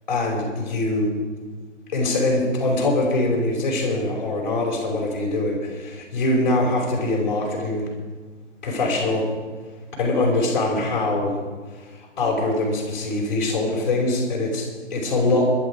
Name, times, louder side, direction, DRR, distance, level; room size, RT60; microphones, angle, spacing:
voice 1, 0.1-1.2 1.9-7.9 8.6-9.3 10.0-11.4 12.2-15.5, left 2 dB, 35° left, -1 dB, 5.4 m, -23 dB
21.5 x 12.5 x 4.9 m, 1.4 s
figure-of-eight pair, 145°, 37 cm